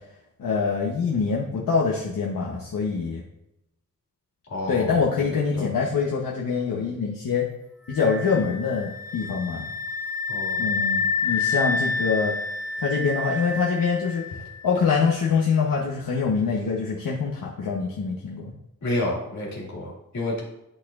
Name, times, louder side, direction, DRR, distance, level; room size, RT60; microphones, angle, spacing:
voice 1, 0.4-3.2 4.7-7.4 7.9-9.7 10.6-12.3 12.8-18.5, left 5 dB, 75° left, -4 dB, 1.1 m, -25 dB
voice 2, 4.5-4.9 5.3-5.6 10.3-10.7 18.8-20.4, left 1 dB, 55° left, -4 dB, 2.4 m, -30 dB
sound 1, 7.9-14.7, left 4 dB, 10° right, 1.3 m, -29 dB
11.5 x 4.2 x 2.5 m, 0.88 s
wide cardioid pair, 165°, 34 cm